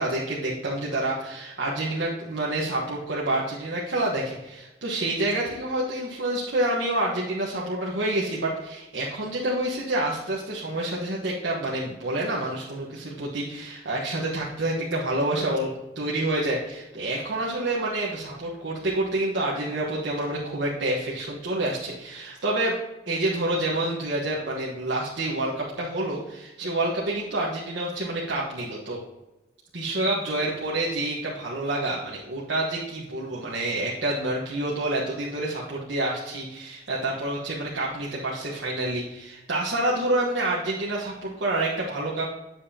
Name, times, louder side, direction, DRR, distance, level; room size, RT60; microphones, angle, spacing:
voice 1, 0.0-15.7 15.9-22.8 23.1-29.0 29.7-42.2, right 1 dB, 70° right, -5 dB, 1.3 m, -28 dB
9.4 x 7.2 x 2.8 m, 1.0 s
head